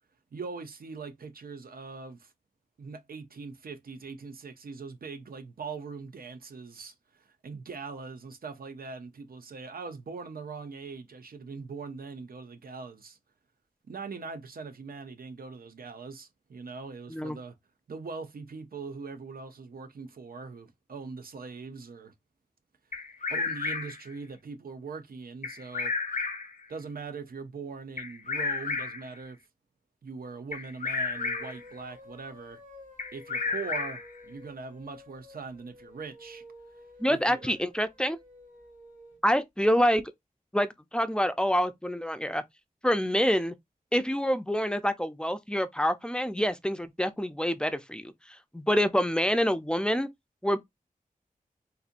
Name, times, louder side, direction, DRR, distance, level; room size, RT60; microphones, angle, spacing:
voice 1, 0.3-2.3 2.8-13.2 13.9-17.6 17.9-22.1 23.3-26.0 26.7-29.4 30.0-32.6 33.1-36.4 37.1-37.5, right 4 dB, 85° right, 0.7 m, -41 dB
Bird vocalization bird call bird song, 22.9-24.1 25.4-26.6 28.0-29.1 30.5-31.6 33.0-34.2, left 4 dB, 65° left, 0.7 m, -32 dB
sound 1, 31.1-39.2, equal, 60° right, 1.4 m, -52 dB
voice 2, 37.0-38.2 39.2-40.0 40.5-42.4 42.8-43.5 43.9-48.1 48.5-50.1 50.4-50.6, equal, 5° left, 0.5 m, -26 dB
4.2 x 2.7 x 2.5 m
wide cardioid pair, 75°, 15 cm